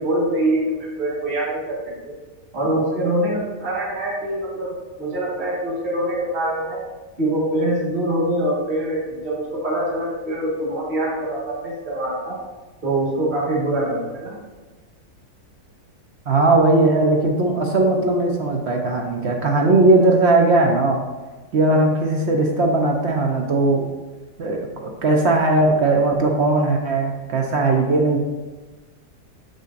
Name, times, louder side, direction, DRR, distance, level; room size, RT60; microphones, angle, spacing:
voice 1, 0.0-1.8 2.0-2.1 2.5-6.8 7.2-12.4 12.8-14.4, right 1 dB, 30° right, -6 dB, 1.6 m, -24 dB
voice 2, 16.3-21.0 21.5-23.8 24.4-28.2, right 2 dB, 60° right, 1 dB, 0.7 m, -18 dB
6.7 x 6.4 x 2.5 m, 1.2 s
omnidirectional pair, 1.8 m